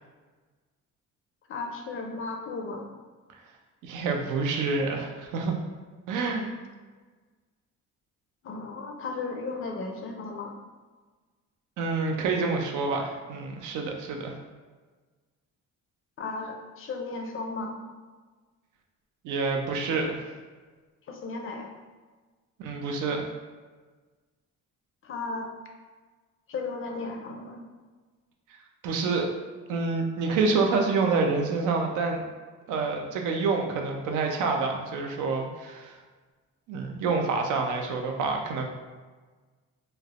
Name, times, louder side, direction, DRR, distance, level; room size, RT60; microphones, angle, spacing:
voice 1, 1.5-2.9 8.4-10.6 16.2-17.8 21.1-21.7 25.0-25.5 26.5-27.6, left 3 dB, 45° left, 2 dB, 0.4 m, -35 dB
voice 2, 3.8-5.6 6.1-6.5 11.8-14.3 19.2-20.2 22.6-23.2 28.8-29.3 29.7-32.2 32.7-36.0 36.7-38.7, right 4 dB, 85° right, 3 dB, 0.5 m, -27 dB
3.2 x 2.0 x 2.3 m, 1.4 s
cardioid pair, 90°, 30 cm